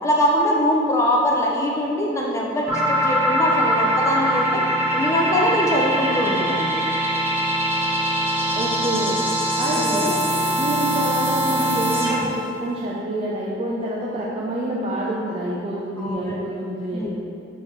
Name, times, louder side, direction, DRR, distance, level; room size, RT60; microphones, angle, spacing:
voice 1, 0.0-4.5 4.9-6.8 9.8-10.1 16.0-16.5 16.9-17.1, left 1 dB, 15° left, -3 dB, 0.5 m, -22 dB
sound 1, 2.7-12.4, right 1 dB, 15° right, 1.0 m, -22 dB
voice 2, 8.5-9.2 9.6-10.2 10.6-17.1, right 1 dB, 30° right, -5 dB, 0.6 m, -27 dB
7.5 x 4.4 x 3.3 m, 2.6 s
head